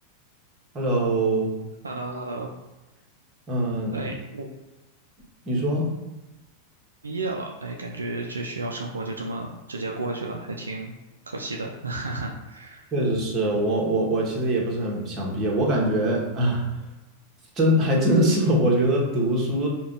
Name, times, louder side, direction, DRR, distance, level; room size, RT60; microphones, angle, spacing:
voice 1, 0.7-1.5 3.5-4.0 5.4-5.9 12.9-16.6 17.5-19.7, right 1 dB, 25° right, -2 dB, 1.3 m, -23 dB
voice 2, 1.8-2.5 3.9-4.5 7.0-10.9 11.3-12.9, right 2 dB, 75° right, 1 dB, 0.4 m, -32 dB
5.1 x 2.4 x 3.7 m, 1.0 s
figure-of-eight pair, 90°, 0 cm